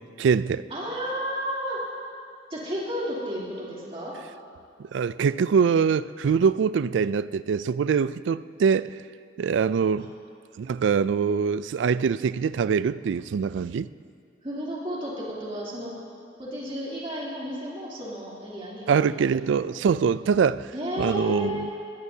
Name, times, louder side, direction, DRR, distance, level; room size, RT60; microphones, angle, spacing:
voice 1, 0.0-0.6 4.9-9.0 9.4-10.1 10.6-13.9 18.9-20.7 21.0-21.7, right 6 dB, 75° right, 0.3 m, -23 dB
voice 2, 0.7-1.8 2.5-4.1 10.0-10.1 14.4-15.9 16.4-19.0 19.6-19.7 20.7-21.7, equal, 30° right, 3.1 m, -32 dB
20.0 x 18.5 x 2.8 m
head